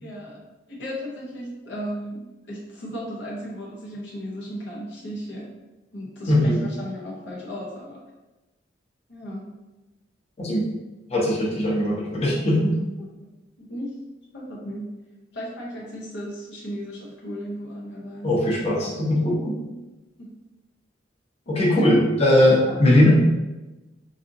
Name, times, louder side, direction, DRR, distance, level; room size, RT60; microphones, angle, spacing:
voice 1, 0.0-0.4 0.7-5.5 5.9-8.0 9.1-9.4 13.2-13.3 13.6-14.0 14.3-15.0 15.3-18.3 20.2-20.3 21.5-22.0 22.6-22.8, equal, 65° left, -4 dB, 0.7 m, -35 dB
voice 2, 6.3-6.6 10.4-10.6 11.1-12.8 18.2-19.6 21.5-23.1, left 1 dB, 35° left, -5 dB, 0.8 m, -19 dB
4.1 x 2.5 x 2.6 m, 1.1 s
head